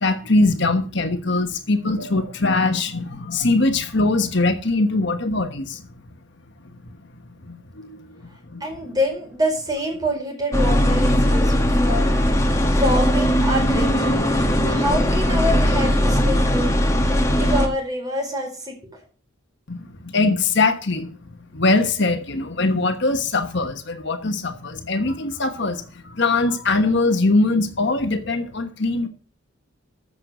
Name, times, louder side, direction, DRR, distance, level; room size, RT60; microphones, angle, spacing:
voice 1, 0.0-5.8 7.5-8.7 19.7-29.1, left 3 dB, 55° left, 1.3 m, -22 dB
voice 2, 8.6-12.1 12.7-14.2 14.6-16.7 17.3-19.0, equal, 20° right, 4.5 m, -26 dB
sound 1, 10.5-17.7, equal, 15° left, 1.7 m, -19 dB
14.0 x 6.4 x 6.9 m
head